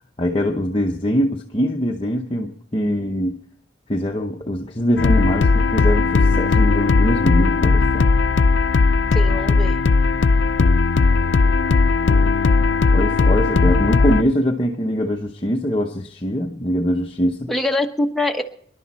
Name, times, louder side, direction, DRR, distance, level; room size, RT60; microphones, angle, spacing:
voice 1, 0.2-3.4 3.9-8.1 12.9-17.5, equal, 30° left, 0.8 m, -22 dB
sound 1, 5.0-14.2, left 4 dB, 75° left, 0.5 m, -17 dB
voice 2, 9.1-9.8 17.5-18.4, left 1 dB, ahead, 1.1 m, -23 dB
26.5 x 11.0 x 4.1 m
head